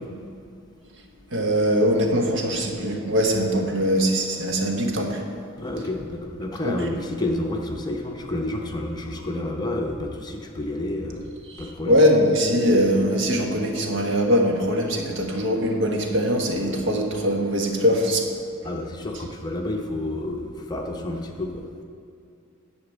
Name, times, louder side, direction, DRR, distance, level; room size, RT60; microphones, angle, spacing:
voice 1, 1.3-5.3 6.6-6.8 11.5-18.3, equal, 65° right, 1 dB, 1.3 m, -22 dB
voice 2, 5.6-11.3 11.6-12.0 18.6-21.8, left 1 dB, 20° left, 1 dB, 0.8 m, -30 dB
10.5 x 5.0 x 7.9 m, 2.5 s
head